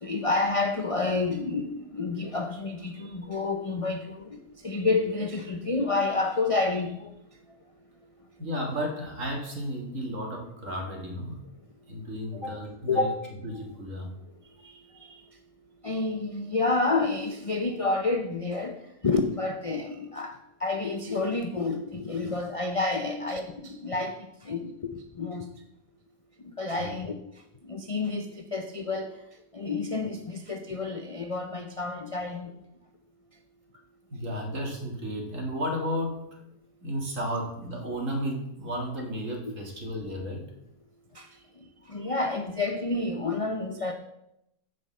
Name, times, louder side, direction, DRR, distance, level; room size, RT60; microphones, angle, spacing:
voice 1, 0.0-7.1 12.9-13.2 14.6-15.2 15.8-24.1 24.4-25.5 26.4-27.1 27.6-29.2 29.5-32.5 41.1-41.3 41.9-43.9, left 3 dB, 40° left, 5 dB, 0.5 m, -29 dB
voice 2, 8.4-11.4 11.9-13.1 13.4-14.1 23.1-23.2 26.8-27.0 34.1-36.3 36.8-40.5 41.9-42.1, equal, 55° right, 1 dB, 2.3 m, -33 dB
9.3 x 5.2 x 7.6 m, 0.83 s
omnidirectional pair, 1.6 m